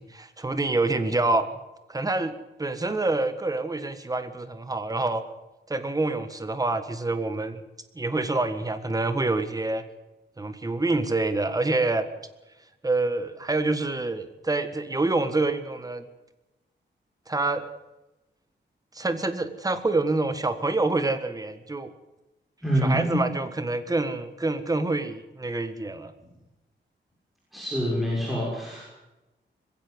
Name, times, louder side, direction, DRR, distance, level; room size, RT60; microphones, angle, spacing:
voice 1, 0.0-1.5 1.9-5.2 5.7-7.6 7.9-9.8 10.4-12.1 12.8-16.0 17.3-17.6 18.9-21.9 22.8-26.1, right 2 dB, 20° right, 10 dB, 1.7 m, -27 dB
voice 2, 22.6-23.2 27.5-28.8, equal, ahead, -5 dB, 6.5 m, -26 dB
21.0 x 16.5 x 8.1 m, 1.0 s
wide cardioid pair, 155°, 19 cm